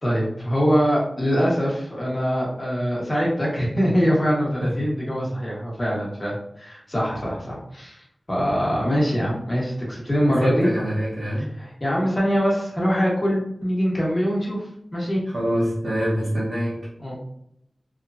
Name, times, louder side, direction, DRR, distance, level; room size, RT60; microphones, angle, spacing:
voice 1, 0.0-10.7 11.6-14.6 14.9-15.2 17.0-17.2, equal, 30° left, -5 dB, 1.2 m, -23 dB
voice 2, 10.3-11.5 15.3-16.9, equal, 70° right, -8 dB, 0.8 m, -25 dB
3.0 x 2.1 x 2.5 m, 0.74 s
wide cardioid pair, 80°, 0 cm